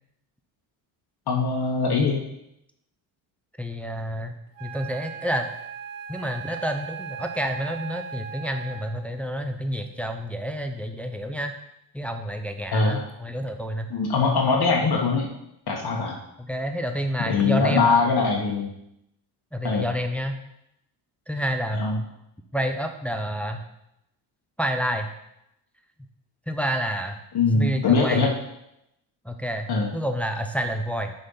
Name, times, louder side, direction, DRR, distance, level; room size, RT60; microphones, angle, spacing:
voice 1, 1.3-2.2 12.7-13.1 13.9-15.3 15.7-16.2 17.3-18.7 19.6-19.9 21.7-22.0 27.3-28.3 29.7-29.9, left 4 dB, 50° left, -1 dB, 1.3 m, -22 dB
voice 2, 3.6-5.5 6.1-11.5 11.9-13.9 16.5-17.9 19.5-20.4 21.3-21.8 22.5-23.6 24.6-25.1 26.5-27.2 27.5-28.2 29.2-29.7 29.9-31.1, equal, 5° left, 5 dB, 0.7 m, -29 dB
Wind instrument woodwind instrument, 4.5-9.1, right 7 dB, 85° right, 0.8 m, -38 dB
6.4 x 4.3 x 5.5 m, 0.82 s
supercardioid pair, 75°, 50 cm